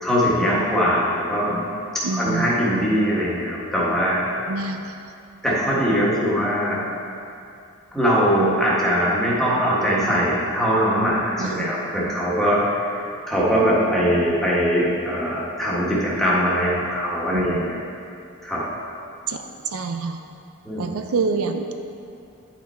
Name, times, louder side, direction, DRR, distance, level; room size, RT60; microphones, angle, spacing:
voice 1, 0.0-1.6 2.1-4.2 5.4-6.8 7.9-17.8 18.4-18.6 20.6-20.9, equal, ahead, -7 dB, 1.5 m, -21 dB
voice 2, 2.0-2.5 4.5-4.8 11.4-11.7 17.3-17.6 19.3-19.4 19.7-20.2 20.8-21.7, right 4 dB, 70° right, 6 dB, 0.5 m, -26 dB
10.5 x 5.9 x 4.3 m, 2.6 s
head